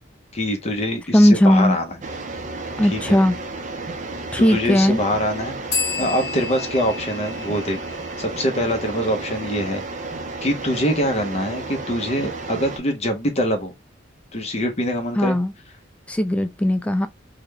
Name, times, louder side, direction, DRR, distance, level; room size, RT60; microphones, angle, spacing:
voice 1, 0.3-1.9 2.9-3.2 4.4-5.5 6.0-7.8 8.2-9.8 10.4-13.7 14.3-15.4, equal, 35° left, 0.7 m, -24 dB
voice 2, 1.1-1.8 2.8-3.3 4.3-5.0 15.2-15.5 16.1-17.1, equal, 5° left, 0.3 m, -17 dB
sound 1, 2.0-12.8, right 3 dB, 40° right, 0.6 m, -32 dB
sound 2, 5.7-9.3, left 5 dB, 60° left, 1.3 m, -31 dB
3.7 x 2.2 x 3.2 m
head